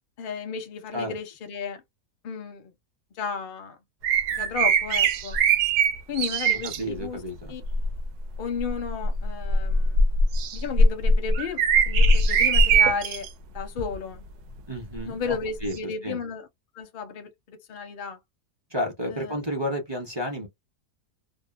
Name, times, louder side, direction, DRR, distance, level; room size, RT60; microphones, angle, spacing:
voice 1, 0.2-1.8 2.2-2.7 3.1-3.8 4.4-5.4 6.1-7.2 7.5-7.6 8.4-10.0 10.5-13.3 13.5-14.2 15.1-16.5 16.7-18.2 19.1-19.4, left 5 dB, 50° left, 0.6 m, -33 dB
sound 1, 4.0-6.8 7.6-8.0 8.6-13.3 13.8-13.9 15.7-15.8, right 2 dB, 85° right, 1.2 m, -21 dB
voice 2, 6.6-7.5 14.7-15.4 15.6-16.2 18.7-20.5, equal, 30° right, 0.5 m, -31 dB
2.8 x 2.2 x 2.4 m
omnidirectional pair, 1.7 m